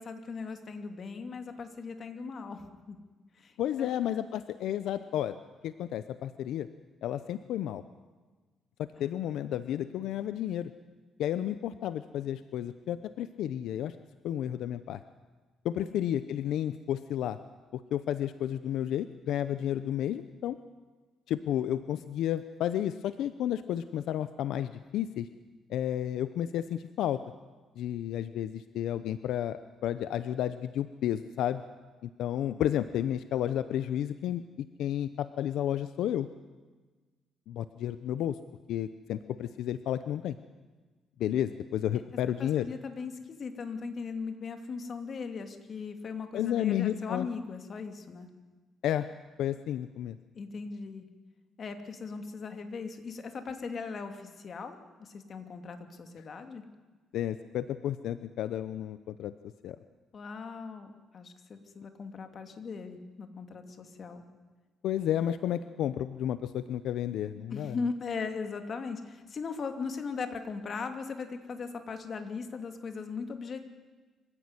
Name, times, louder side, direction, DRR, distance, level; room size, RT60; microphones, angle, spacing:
voice 1, 0.0-3.0 3.3-3.9 9.0-9.1 15.8-15.9 42.4-48.3 50.3-51.1 51.6-56.6 60.1-64.2 67.5-73.6, left 5 dB, 45° left, 7 dB, 2.6 m, -39 dB
voice 2, 3.6-5.4 5.6-6.7 7.0-7.8 9.0-10.7 11.2-13.9 14.2-15.0 15.6-17.4 17.7-20.6 21.3-25.3 25.7-27.2 27.8-31.6 32.0-34.4 34.8-36.3 37.5-38.4 38.7-40.4 41.2-42.7 46.3-47.3 48.8-49.1 49.4-50.2 57.1-59.3 59.6-59.8 64.8-67.8, left 11 dB, 80° left, 12 dB, 0.8 m, -32 dB
25.0 x 16.0 x 9.8 m, 1.3 s
cardioid pair, 125°, 0 cm